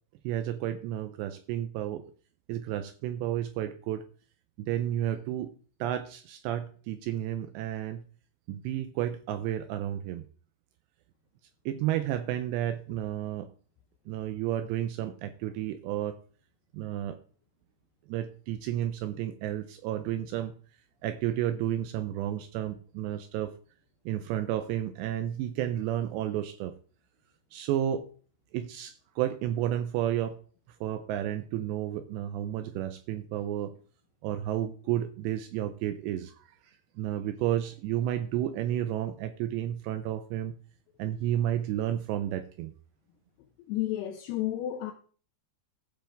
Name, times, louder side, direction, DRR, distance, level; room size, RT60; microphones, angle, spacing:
voice 1, 0.2-2.0 2.5-4.0 4.6-5.5 5.8-8.0 8.5-10.3 11.7-13.5 14.1-16.2 16.7-17.2 18.1-20.5 21.0-23.5 24.1-26.7 27.5-28.1 28.5-30.4 30.8-33.7 34.2-36.5 37.0-40.6 41.0-42.7, right 11 dB, 85° right, 2.5 m, -31 dB
voice 2, 43.7-44.9, left 13 dB, 85° left, 2.4 m, -31 dB
16.0 x 5.4 x 3.4 m
omnidirectional pair, 5.5 m